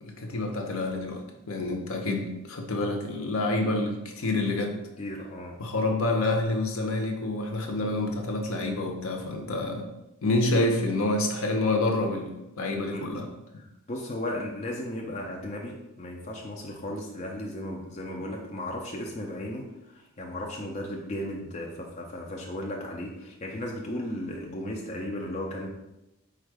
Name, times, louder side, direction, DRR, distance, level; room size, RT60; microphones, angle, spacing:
voice 1, 0.0-4.7 5.6-9.8 10.2-13.3 18.1-18.2, left 2 dB, 65° left, 3 dB, 0.7 m, -28 dB
voice 2, 5.0-5.6 12.9-13.0 13.6-25.7, left 1 dB, 30° left, -1 dB, 0.4 m, -35 dB
4.4 x 2.4 x 4.6 m, 0.92 s
head